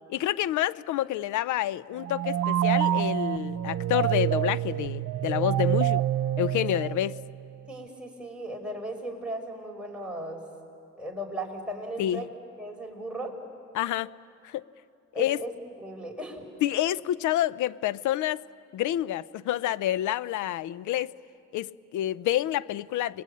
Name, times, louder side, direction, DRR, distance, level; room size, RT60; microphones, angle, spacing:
voice 1, 0.1-6.0 6.4-7.2 12.0-12.2 13.7-14.1 14.4-14.6 15.2-15.4 16.6-18.4 18.7-21.1 21.5-23.2, left 13 dB, 80° left, 0.6 m, -28 dB
sound 1, 2.0-7.5, right 11 dB, 65° right, 0.7 m, -27 dB
voice 2, 7.7-10.4 11.0-12.3 12.6-13.3 15.1-15.5 15.8-16.5, right 1 dB, 5° right, 5.1 m, -36 dB
29.5 x 21.5 x 8.6 m
cardioid pair, 90°, 30 cm